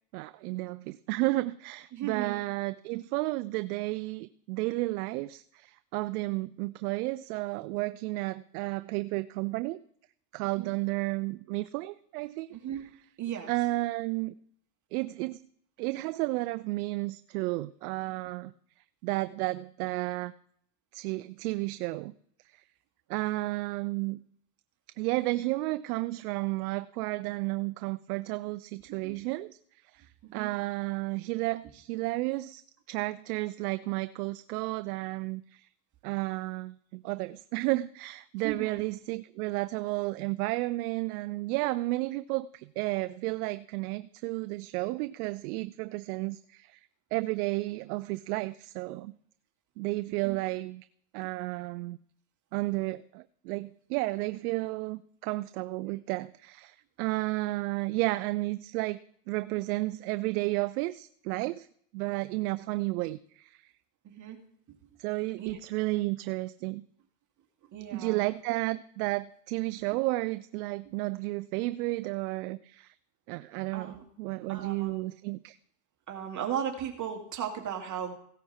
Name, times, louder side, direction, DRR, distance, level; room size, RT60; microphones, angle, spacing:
voice 1, 0.1-9.8 10.3-12.5 13.5-14.3 14.9-15.5 15.8-18.5 19.0-20.3 20.9-22.1 22.5-22.6 23.1-24.2 25.0-29.6 29.9-32.6 32.9-35.7 36.0-46.8 47.1-49.1 49.8-50.8 51.1-52.0 52.5-61.7 61.9-63.6 65.0-66.8 67.9-72.9 73.3-75.6, right 21 dB, 70° right, 13 dB, 0.6 m, -32 dB
voice 2, 1.9-2.4 10.6-10.7 12.5-12.8 13.2-13.5 28.9-29.3 30.2-30.5 38.4-38.8 50.1-50.4 51.2-51.3 62.1-62.2 64.0-64.4 64.7-64.9 65.4-65.5 67.7-68.2 73.7-74.0 74.5-74.9 76.1-78.1, right 9 dB, 40° right, 1 dB, 2.4 m, -36 dB
16.0 x 9.3 x 4.3 m, 0.67 s
supercardioid pair, 105°, 47 cm